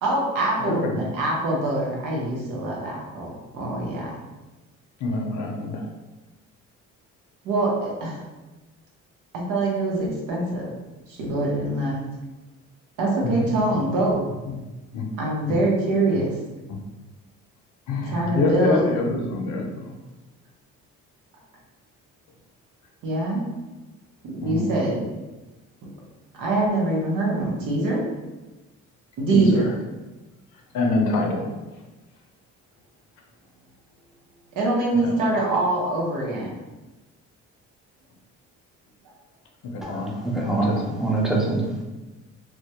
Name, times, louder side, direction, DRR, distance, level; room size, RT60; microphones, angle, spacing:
voice 1, 0.0-4.2 7.4-8.2 9.3-10.7 11.1-12.0 13.0-14.2 15.2-16.3 18.0-18.9 23.0-23.4 24.2-25.0 26.3-28.0 29.2-29.8 34.5-36.5, right 2 dB, 85° right, -3 dB, 0.8 m, -24 dB
voice 2, 0.6-1.0 5.0-5.9 13.2-13.3 14.9-15.1 17.9-19.9 24.4-24.7 29.3-29.6 30.7-31.5 35.0-35.1 39.6-41.0, left 2 dB, 75° left, 2 dB, 0.6 m, -26 dB
voice 3, 39.9-40.7 41.0-41.8, right 3 dB, ahead, -2 dB, 0.5 m, -24 dB
2.1 x 2.1 x 2.8 m, 1.1 s
cardioid pair, 90°, 30 cm